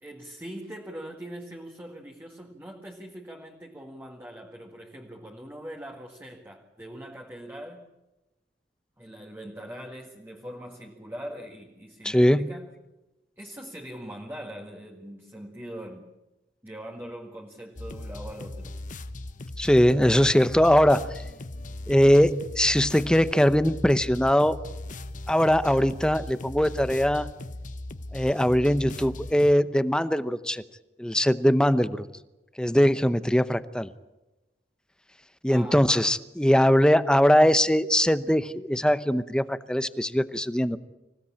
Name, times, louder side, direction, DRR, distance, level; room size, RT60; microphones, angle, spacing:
voice 1, 0.0-7.9 9.0-12.7 13.4-16.1 16.6-18.8 35.5-35.9, equal, 15° right, 1 dB, 1.9 m, -42 dB
voice 2, 12.0-12.5 19.6-21.1 21.9-24.6 25.3-27.3 28.1-30.6 31.0-32.0 32.6-33.9 35.4-40.8, equal, 5° left, 13 dB, 0.7 m, -21 dB
sound 1, 17.8-29.5, left 2 dB, 50° left, 1.0 m, -38 dB
26.0 x 16.5 x 8.6 m, 1.0 s
head